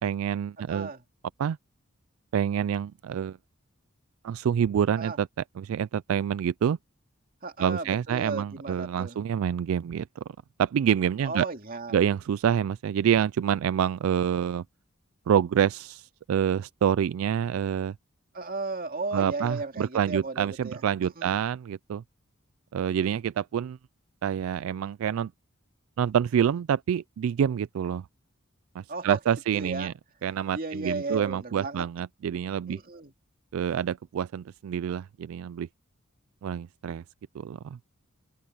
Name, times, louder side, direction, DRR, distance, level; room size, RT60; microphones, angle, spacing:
voice 1, 0.0-0.9 1.4-1.6 2.3-3.4 4.2-5.3 5.6-6.8 7.6-10.2 10.6-11.5 11.9-14.6 15.3-17.9 19.1-22.0 22.7-23.8 24.2-25.3 26.0-28.1 28.8-29.9 30.2-32.8 33.5-35.7 36.4-37.0 37.3-38.0, right 8 dB, 80° right, 0.3 m, -27 dB
voice 2, 0.7-1.0 5.0-5.2 7.4-9.2 11.2-12.0 18.3-21.4 28.9-29.2 29.5-29.9 30.5-31.9 32.7-33.1, right 3 dB, 45° right, 2.4 m, -35 dB
open air
head